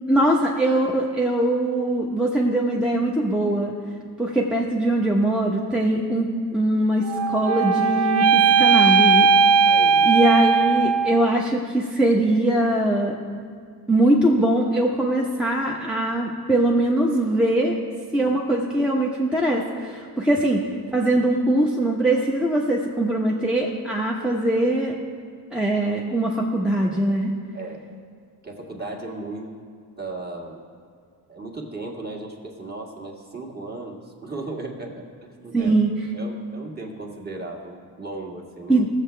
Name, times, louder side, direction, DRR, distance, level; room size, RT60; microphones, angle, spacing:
voice 1, 0.1-3.7 4.2-6.3 6.5-9.3 10.0-13.2 13.9-17.8 18.1-24.9 25.5-27.3 35.5-35.9 38.7-38.9, right 1 dB, ahead, -2 dB, 1.0 m, -21 dB
sound 1, 7.0-11.3, right 5 dB, 40° right, 0.4 m, -18 dB
voice 2, 9.7-10.1 18.3-18.4 20.3-20.4 27.5-27.8 28.4-29.5 30.0-30.6 31.3-35.7 36.1-38.9, right 2 dB, 25° right, -1 dB, 1.8 m, -36 dB
17.0 x 7.3 x 3.4 m, 2.1 s
cardioid pair, 100°, 41 cm